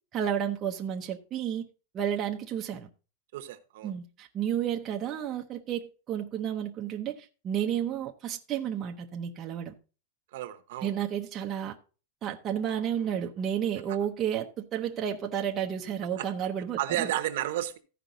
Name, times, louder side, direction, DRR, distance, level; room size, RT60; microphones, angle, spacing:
voice 1, 0.1-1.7 1.9-2.9 3.8-9.7 10.8-11.8 12.2-17.1, right 9 dB, 20° right, 0.7 m, -31 dB
voice 2, 3.3-3.9 10.3-10.9 16.2-16.3 16.8-17.8, right 13 dB, 55° right, 0.9 m, -32 dB
15.0 x 5.1 x 3.8 m
supercardioid pair, 175°, 0 cm